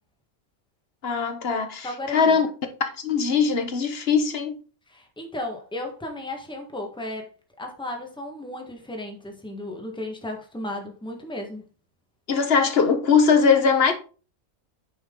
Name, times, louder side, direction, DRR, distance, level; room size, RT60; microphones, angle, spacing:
voice 1, 1.0-2.5 2.8-4.5 12.3-13.9, left 5 dB, 45° left, 1.4 m, -21 dB
voice 2, 1.8-2.4 4.9-7.3 7.6-11.7, left 1 dB, 5° left, 1.5 m, -34 dB
9.1 x 5.9 x 3.9 m
omnidirectional pair, 1.5 m